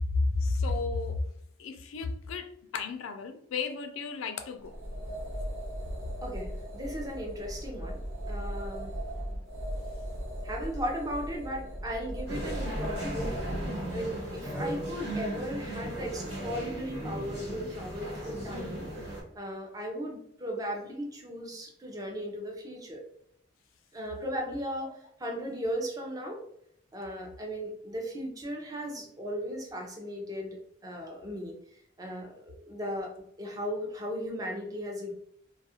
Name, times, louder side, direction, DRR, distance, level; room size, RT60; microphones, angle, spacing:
voice 1, 0.4-1.1 1.6-4.7 24.8-24.9, left 4 dB, 80° left, 7 dB, 0.3 m, -33 dB
sound 1, 4.6-13.7, equal, 85° right, 0.6 m, -37 dB
voice 2, 6.2-8.0 8.3-8.9 10.4-13.3 13.9-18.9 19.3-23.0 23.9-24.9 25.2-26.4 26.9-30.6 30.8-31.5 32.0-33.1 33.4-35.1, equal, 20° right, 1 dB, 0.4 m, -36 dB
sound 2, 12.3-19.2, right 1 dB, 55° right, 1.1 m, -36 dB
2.3 x 2.0 x 2.7 m, 0.70 s
head